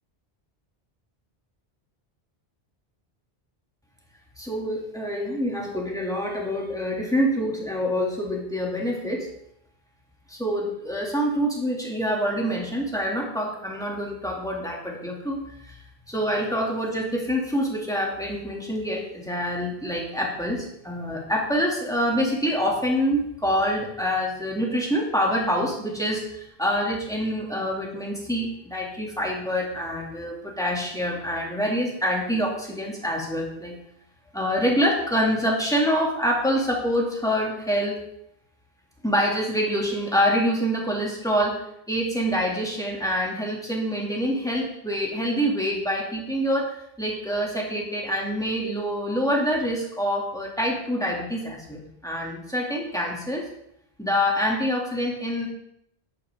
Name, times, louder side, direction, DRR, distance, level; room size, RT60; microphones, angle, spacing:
voice 1, 4.4-9.3 10.3-15.8 16.1-33.8 34.3-38.0 39.0-53.4 54.0-55.5, equal, 5° left, -2 dB, 2.4 m, -26 dB
11.5 x 8.6 x 3.7 m, 0.76 s
omnidirectional pair, 1.1 m